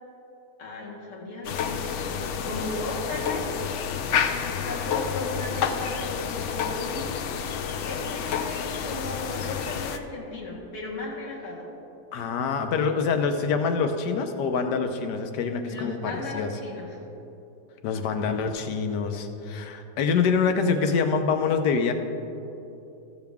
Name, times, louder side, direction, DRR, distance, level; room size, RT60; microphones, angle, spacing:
voice 1, 0.6-3.6 4.4-7.2 7.8-11.7 15.7-17.0, left 2 dB, 50° left, -4 dB, 1.8 m, -36 dB
sound 1, 1.4-10.0, left 7 dB, 70° left, 0.7 m, -29 dB
voice 2, 12.1-16.5 17.8-21.9, left 5 dB, 90° left, 6 dB, 1.4 m, -25 dB
14.0 x 6.9 x 3.5 m, 3.0 s
omnidirectional pair, 1.7 m